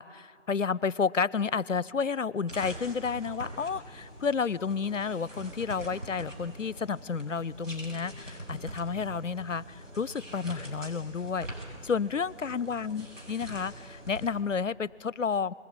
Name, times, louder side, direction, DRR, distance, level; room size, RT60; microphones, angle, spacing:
voice 1, 0.0-15.5, left 5 dB, 70° left, 22 dB, 0.7 m, -31 dB
sound 1, 0.7-9.2, right 1 dB, 60° right, 5.6 m, -59 dB
sound 2, 2.5-14.3, right 1 dB, 80° right, 6.6 m, -44 dB
21.5 x 17.5 x 9.5 m, 2.6 s
figure-of-eight pair, 170°, 39 cm